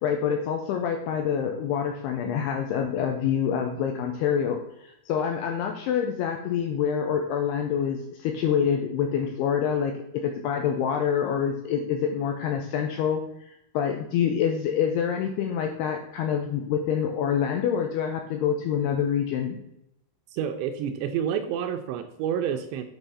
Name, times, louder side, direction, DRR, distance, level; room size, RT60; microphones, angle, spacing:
voice 1, 0.0-19.6, left 8 dB, 80° left, 4 dB, 2.3 m, -26 dB
voice 2, 20.3-22.8, right 8 dB, 80° right, 7 dB, 2.6 m, -29 dB
8.9 x 4.0 x 5.4 m, 0.80 s
omnidirectional pair, 5.4 m